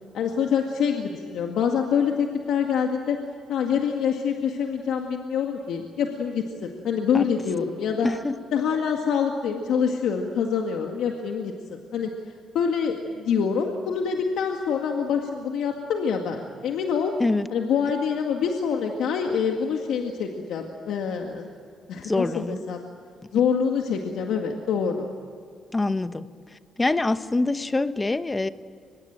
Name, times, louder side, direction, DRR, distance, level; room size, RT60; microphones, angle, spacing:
voice 1, 0.1-3.2 3.5-8.1 8.5-12.1 12.5-17.1 17.5-21.5 21.9-22.8 23.3-25.1, left 7 dB, 80° left, 2 dB, 2.0 m, -26 dB
voice 2, 8.0-8.4 17.2-17.5 22.0-22.6 25.7-26.3 26.8-28.5, left 2 dB, 20° left, 12 dB, 1.0 m, -25 dB
24.5 x 21.0 x 9.0 m, 2.2 s
cardioid pair, 90°, 0 cm